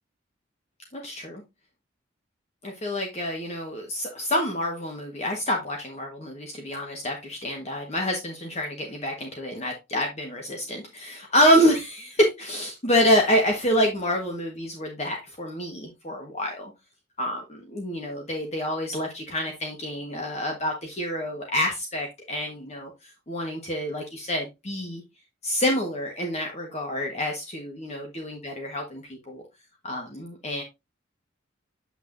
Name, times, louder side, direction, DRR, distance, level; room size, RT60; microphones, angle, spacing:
voice 1, 0.9-1.4 2.6-16.7 17.2-22.9 23.3-25.0 25.4-29.4 29.8-30.6, equal, 35° left, 1.3 m, -27 dB
8.2 x 5.9 x 2.6 m
head